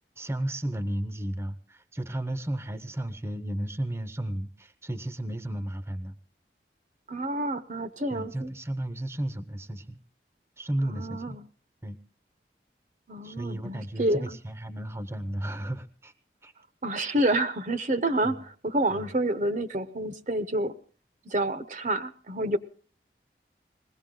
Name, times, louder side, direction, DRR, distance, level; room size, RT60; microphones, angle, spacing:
voice 1, 0.2-6.2 8.1-10.0 10.6-11.4 11.8-12.0 13.2-16.1 16.4-16.5 18.2-18.4 18.9-19.1, right 1 dB, 15° right, 12 dB, 0.7 m, -33 dB
voice 2, 7.1-8.5 10.8-11.4 13.1-14.4 16.8-20.7 21.3-22.6, right 1 dB, 45° right, 11 dB, 0.8 m, -28 dB
21.0 x 16.5 x 3.8 m, 0.41 s
head